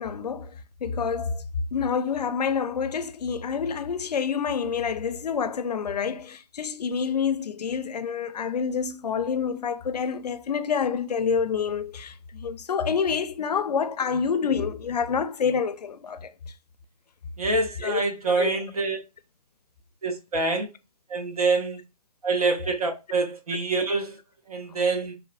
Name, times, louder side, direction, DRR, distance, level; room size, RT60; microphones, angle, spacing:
voice 1, 0.0-1.4 1.7-16.3 17.8-18.0 18.4-18.5, left 6 dB, 80° left, 0.4 m, -27 dB
voice 2, 17.4-19.0 20.0-20.7 21.1-21.8 22.2-24.2 24.5-25.2, right 3 dB, 65° right, 0.8 m, -26 dB
2.9 x 2.0 x 2.4 m
hypercardioid pair, 170°, 20 cm